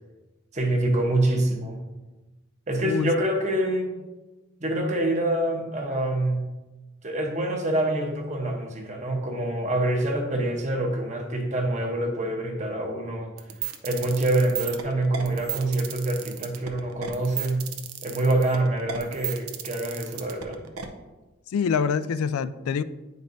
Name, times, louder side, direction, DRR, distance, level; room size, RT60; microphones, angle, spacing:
voice 1, 0.5-1.8 2.7-3.9 4.6-6.4 7.0-13.3 13.8-17.6 18.0-20.6, right 1 dB, 35° right, 2 dB, 0.8 m, -26 dB
voice 2, 2.8-3.1 21.5-22.8, left 6 dB, 90° left, 14 dB, 0.3 m, -25 dB
sound 1, 13.4-20.9, right 9 dB, 85° right, 0.7 m, -34 dB
8.7 x 5.2 x 2.6 m, 1.1 s
head